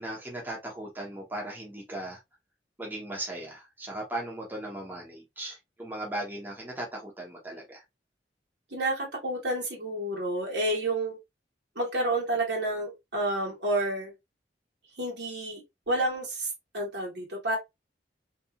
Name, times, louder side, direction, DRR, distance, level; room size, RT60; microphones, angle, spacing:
voice 1, 0.0-2.2 2.8-7.8, right 1 dB, 10° right, 0.7 m, -37 dB
voice 2, 8.7-11.2 11.7-14.1 15.0-17.6, right 1 dB, 80° right, 1.3 m, -30 dB
2.7 x 2.3 x 2.3 m
head